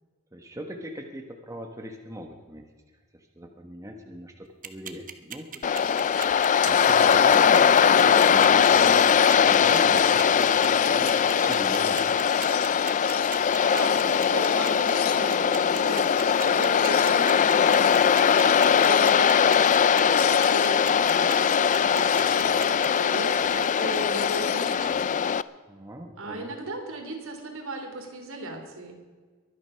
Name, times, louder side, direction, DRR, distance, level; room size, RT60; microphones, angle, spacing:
voice 1, 0.3-2.6 3.1-12.1 22.2-22.4 25.7-26.5, equal, 15° right, 3 dB, 1.2 m, -39 dB
sound 1, 4.6-22.9, right 9 dB, 40° right, 1.0 m, -38 dB
Waves surf, 5.6-25.4, left 7 dB, 35° left, 0.4 m, -21 dB
sound 2, 5.8-6.3 6.6-25.0, left 11 dB, 75° left, 0.9 m, -39 dB
voice 2, 13.6-18.5 18.7-20.2 20.5-25.0 26.2-28.9, right 2 dB, 65° right, 3 dB, 3.3 m, -37 dB
23.0 x 9.7 x 5.7 m, 1.5 s
head